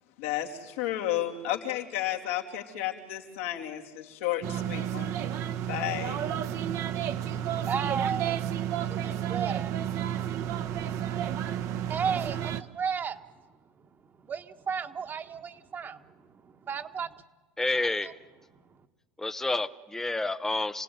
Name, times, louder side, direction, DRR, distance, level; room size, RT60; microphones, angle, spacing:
voice 1, 0.2-5.1 5.7-6.2, left 12 dB, 85° left, 2 dB, 2.9 m, -32 dB
sound 1, 4.4-12.6, right 10 dB, 50° right, 1.1 m, -31 dB
voice 2, 7.3-13.2 14.2-17.1, right 6 dB, 30° right, 7 dB, 1.4 m, -35 dB
voice 3, 17.6-18.2 19.2-20.8, left 2 dB, 5° left, 10 dB, 0.7 m, -29 dB
28.5 x 17.5 x 9.4 m, 1.3 s
supercardioid pair, 120°, 7 cm